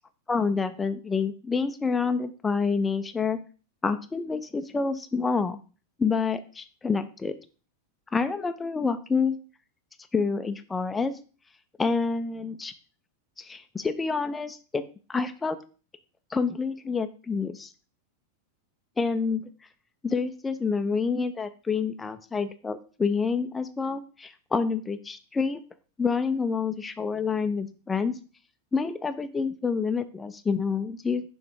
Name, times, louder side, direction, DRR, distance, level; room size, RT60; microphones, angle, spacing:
voice 1, 0.3-3.4 3.8-5.6 6.0-7.3 8.1-9.4 10.1-11.1 11.8-12.7 13.4-14.8 15.1-15.6 16.3-17.7 19.0-19.4 20.0-25.6 26.0-28.2 28.7-31.2, left 5 dB, 15° left, 9 dB, 0.5 m, -28 dB
5.9 x 3.5 x 4.7 m, 0.37 s
figure-of-eight pair, 90°, 0 cm